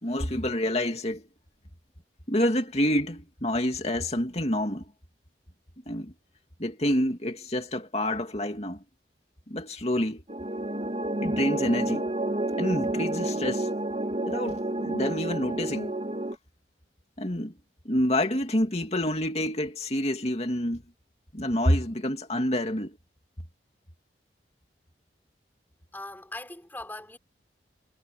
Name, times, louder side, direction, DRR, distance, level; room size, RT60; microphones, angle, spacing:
voice 1, 0.0-1.3 2.3-4.9 5.9-6.1 6.6-8.8 9.5-10.2 11.2-12.1 12.6-13.7 14.2-16.0 17.2-17.5 17.8-20.8 21.3-23.0, left 1 dB, 35° left, 2.7 m, -28 dB
sound 1, 10.3-16.3, right 1 dB, 35° right, 1.9 m, -30 dB
voice 2, 25.9-27.2, left 2 dB, 10° left, 4.8 m, -40 dB
head